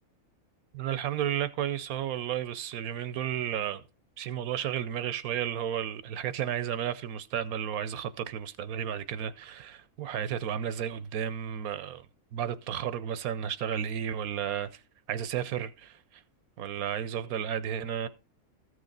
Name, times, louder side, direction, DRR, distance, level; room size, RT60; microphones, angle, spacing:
voice 1, 0.7-3.8 4.2-12.1 12.3-14.8 15.1-16.2 16.6-18.1, right 9 dB, 80° right, 1.1 m, -33 dB
14.0 x 6.4 x 3.9 m
omnidirectional pair, 1.5 m